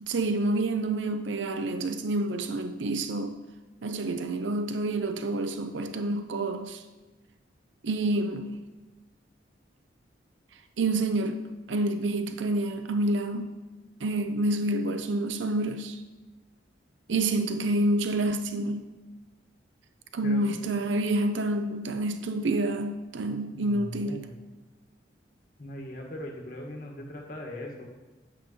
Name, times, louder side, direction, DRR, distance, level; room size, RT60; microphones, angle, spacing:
voice 1, 0.0-3.4 3.8-6.8 7.8-8.6 10.8-11.4 11.7-13.5 14.0-16.0 17.1-18.9 20.1-24.3, right 2 dB, 80° right, 0.6 m, -28 dB
voice 2, 20.2-20.7 23.5-24.4 25.6-27.8, left 1 dB, 45° left, 1.6 m, -40 dB
9.9 x 8.5 x 3.1 m
head